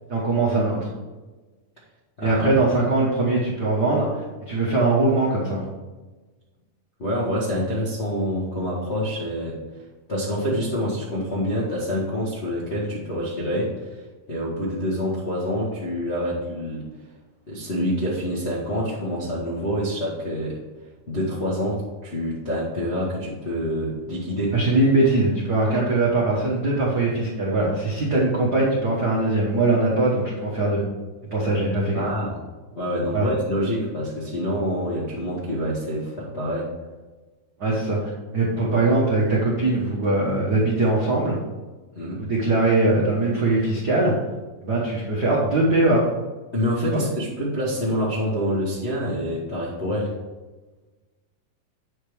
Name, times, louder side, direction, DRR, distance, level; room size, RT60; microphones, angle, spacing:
voice 1, 0.1-0.8 2.2-4.1 4.5-5.6 24.5-30.8 31.3-32.1 33.1-33.3 37.6-38.0 38.3-41.4 42.1-44.1 44.6-46.0 46.9-47.0, right 2 dB, 80° right, -5 dB, 0.9 m, -21 dB
voice 2, 2.2-2.5 7.0-9.6 10.1-14.0 14.3-16.8 17.5-20.6 21.1-24.6 31.9-32.4 32.7-36.7 41.9-42.2 46.5-50.2, equal, 55° left, -8 dB, 0.7 m, -26 dB
8.7 x 3.5 x 6.2 m, 1.2 s
omnidirectional pair, 3.9 m